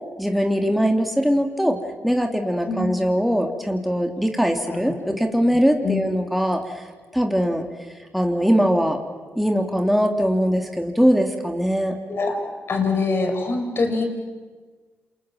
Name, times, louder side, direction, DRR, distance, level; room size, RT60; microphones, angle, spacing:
voice 1, 0.2-1.8 2.0-6.8 7.1-7.6 8.1-9.0 9.4-11.9, equal, ahead, 3 dB, 3.1 m, -21 dB
voice 2, 12.1-12.4 12.7-14.0, left 4 dB, 50° left, 4 dB, 6.4 m, -24 dB
28.0 x 22.5 x 7.5 m, 1.4 s
supercardioid pair, 50°, 5 cm